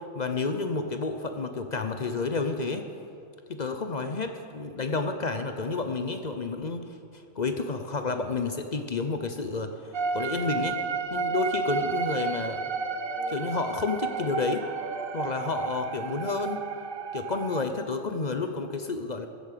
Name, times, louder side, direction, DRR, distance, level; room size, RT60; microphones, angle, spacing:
voice 1, 0.0-2.8 3.5-10.8 11.1-12.6 13.3-14.6 15.1-16.6 17.1-19.3, left 4 dB, 45° left, 7 dB, 0.7 m, -30 dB
sound 1, 8.8-15.6, right 1 dB, 75° right, 2.9 m, -47 dB
sound 2, 9.9-17.6, right 5 dB, 55° right, 0.8 m, -32 dB
15.5 x 8.7 x 6.6 m, 2.5 s
omnidirectional pair, 1.3 m